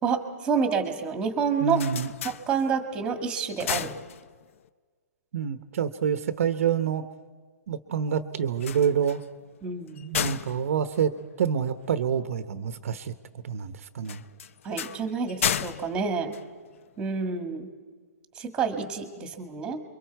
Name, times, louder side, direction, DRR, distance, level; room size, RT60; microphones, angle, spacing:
voice 1, 0.0-1.8 2.2-3.9 9.6-10.1 14.6-16.3 17.0-17.7 18.4-19.8, right 5 dB, 10° right, 6 dB, 1.8 m, -28 dB
sound 1, 1.5-3.0 3.4-4.7 8.5-11.9 14.0-17.1, left 8 dB, 50° left, 0.6 m, -34 dB
voice 2, 1.6-2.1 5.3-7.0 7.7-9.2 10.0-11.1 11.4-13.1 13.4-14.2, right 7 dB, 55° right, 10 dB, 0.9 m, -27 dB
29.5 x 23.5 x 4.6 m, 1.5 s
hypercardioid pair, 160°, 9 cm